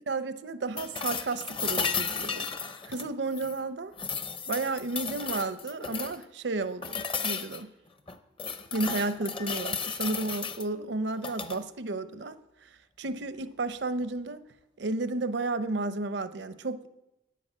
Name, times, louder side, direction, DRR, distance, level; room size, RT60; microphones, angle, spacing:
voice 1, 0.1-2.5 2.9-3.9 4.5-7.7 8.7-12.7 13.0-14.4 14.8-16.9, right 3 dB, 75° right, 12 dB, 0.7 m, -32 dB
sound 1, 0.8-3.6 4.0-6.2 6.8-7.6 8.1-10.6 11.1-11.6 13.6-13.7, left 5 dB, 30° left, 0.8 m, -34 dB
11.0 x 9.5 x 7.5 m, 0.95 s
head